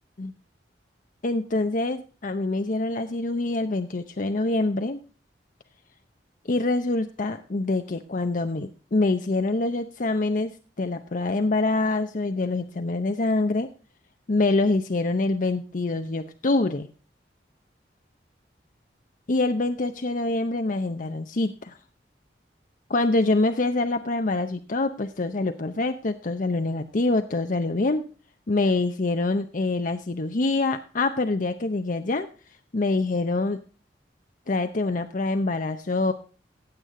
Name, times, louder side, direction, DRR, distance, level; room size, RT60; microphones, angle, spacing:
voice 1, 1.2-5.0 6.5-10.5 10.8-13.7 14.3-16.9 19.3-21.8 22.9-28.1 28.5-32.3 32.7-33.6 34.5-36.1, left 2 dB, 50° left, 8 dB, 0.7 m, -25 dB
15.5 x 8.4 x 3.7 m, 0.38 s
head